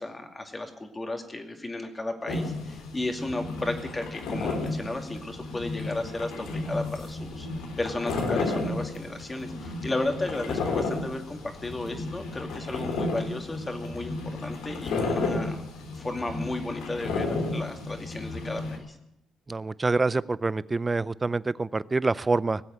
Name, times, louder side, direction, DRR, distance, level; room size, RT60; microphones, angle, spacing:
voice 1, 0.0-7.5 7.8-15.6 15.9-19.0, left 2 dB, 20° left, 5 dB, 2.5 m, -34 dB
sound 1, 2.3-18.8, left 3 dB, 85° left, 3.2 m, -33 dB
voice 2, 19.5-22.6, right 3 dB, 25° right, 19 dB, 0.5 m, -26 dB
19.0 x 8.0 x 9.4 m, 0.84 s
cardioid pair, 90°, 0 cm